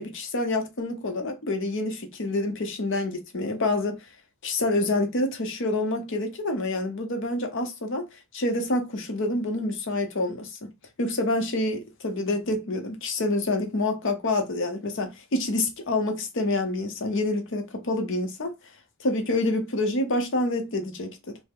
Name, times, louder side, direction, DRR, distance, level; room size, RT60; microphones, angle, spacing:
voice 1, 0.0-4.0 4.4-8.1 8.3-10.7 11.0-18.5 19.0-21.4, left 2 dB, 55° left, 0.7 m, -27 dB
3.2 x 2.0 x 3.5 m
head